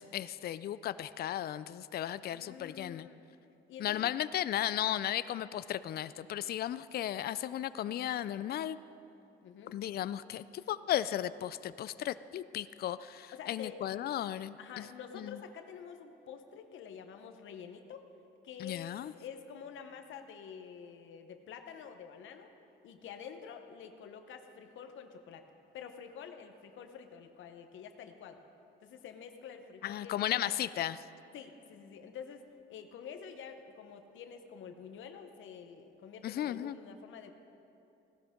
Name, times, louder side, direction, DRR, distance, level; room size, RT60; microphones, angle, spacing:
voice 1, 0.0-3.1 3.8-8.8 9.7-14.9 15.1-15.4 18.6-19.1 29.8-31.0 36.2-36.8, left 12 dB, 50° left, 15 dB, 0.4 m, -35 dB
voice 2, 2.3-3.3 3.7-4.1 9.4-9.8 13.3-13.8 14.6-18.1 18.4-22.5 22.8-25.4 25.7-28.4 28.8-30.5 31.3-32.4 32.7-37.3, left 7 dB, 75° left, 6 dB, 1.0 m, -48 dB
16.5 x 12.5 x 3.7 m, 2.8 s
cardioid pair, 90°, 20 cm